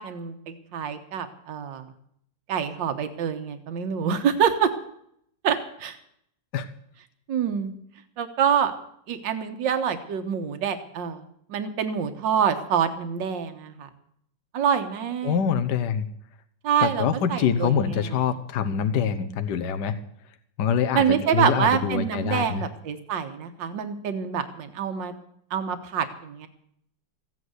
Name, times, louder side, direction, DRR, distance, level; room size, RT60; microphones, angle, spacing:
voice 1, 0.0-1.9 2.5-4.7 5.4-6.0 7.3-7.7 8.2-8.7 9.1-11.2 11.5-13.9 14.5-15.4 16.6-17.9 20.9-25.1 25.5-26.5, right 8 dB, 80° right, 8 dB, 1.9 m, -26 dB
voice 2, 15.2-16.1 16.8-20.0 20.6-22.6, left 7 dB, 70° left, 10 dB, 1.4 m, -25 dB
15.5 x 9.3 x 8.0 m, 0.70 s
omnidirectional pair, 2.0 m